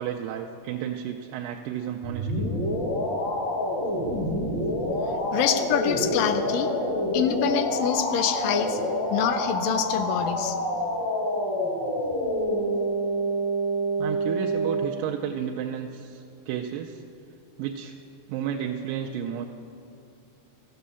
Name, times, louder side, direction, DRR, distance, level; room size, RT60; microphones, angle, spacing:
voice 1, 0.0-2.5 14.0-17.0 17.6-17.9 18.3-19.5, right 9 dB, 90° right, 2 dB, 2.3 m, -32 dB
sound 1, 2.0-14.9, equal, 45° left, 1.9 m, -27 dB
voice 2, 5.3-6.7 7.1-8.8 9.1-10.6, left 8 dB, 90° left, 9 dB, 2.4 m, -26 dB
14.5 x 7.5 x 6.9 m, 2.6 s
omnidirectional pair, 3.8 m